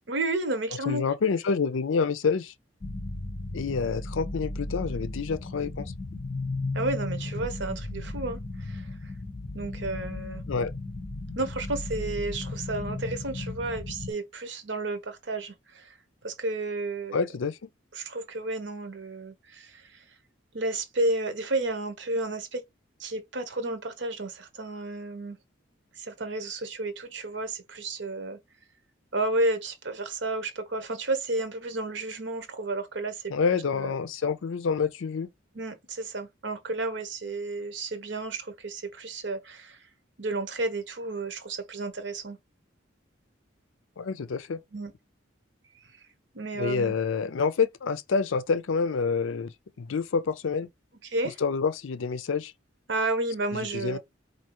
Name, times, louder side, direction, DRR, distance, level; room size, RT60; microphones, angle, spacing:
voice 1, 0.1-1.0 6.7-8.9 9.5-10.4 11.4-15.9 16.2-17.2 17.9-19.9 20.5-22.6 23.0-25.4 26.0-28.4 29.1-33.2 33.7-33.9 35.5-39.8 40.2-42.4 44.7-44.9 46.3-46.9 51.0-51.4 52.9-54.0, right 2 dB, 65° right, 0.9 m, -32 dB
voice 2, 0.9-2.5 3.5-5.9 10.5-10.7 17.1-17.7 33.3-35.3 44.0-44.6 46.6-49.5 49.8-50.7 51.4-52.5 53.5-54.0, left 5 dB, 80° left, 0.5 m, -27 dB
sound 1, 2.8-14.1, left 2 dB, 30° left, 0.6 m, -35 dB
4.4 x 2.7 x 2.9 m
head